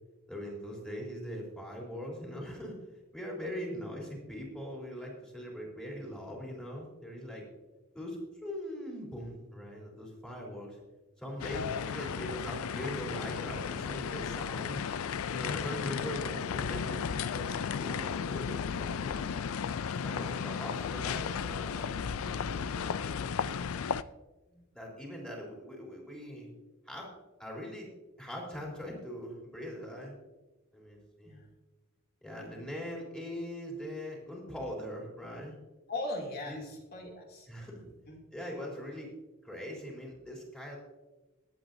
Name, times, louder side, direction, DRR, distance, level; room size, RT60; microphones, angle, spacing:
voice 1, 0.3-2.8 3.1-7.4 7.9-10.8 11.2-14.8 15.3-17.5 17.8-19.3 20.0-21.9 22.2-23.6 24.7-26.5 26.9-27.1 27.4-27.9 28.2-30.1 30.7-31.4 32.2-35.6 36.5-36.7 37.5-37.8 38.3-39.1 39.4-40.8, equal, 5° left, -3 dB, 3.6 m, -41 dB
sound 1, 11.4-24.0, left 7 dB, 75° left, 0.4 m, -34 dB
voice 2, 35.9-37.5 38.1-38.2, left 2 dB, 50° left, 1 dB, 2.8 m, -39 dB
22.5 x 8.9 x 2.7 m, 1.1 s
head